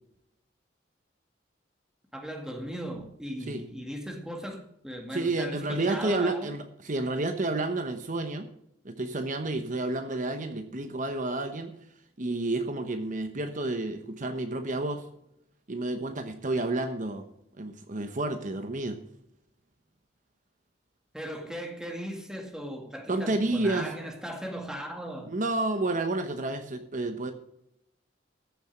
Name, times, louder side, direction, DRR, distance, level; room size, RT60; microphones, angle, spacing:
voice 1, 2.1-6.5 21.1-25.3, equal, 5° right, 2.0 m, -38 dB
voice 2, 5.1-8.5 8.8-11.7 12.2-15.1 15.7-17.2 17.6-19.0 23.1-23.9 25.3-27.3, right 2 dB, 45° right, 1.0 m, -30 dB
14.5 x 7.0 x 6.0 m
head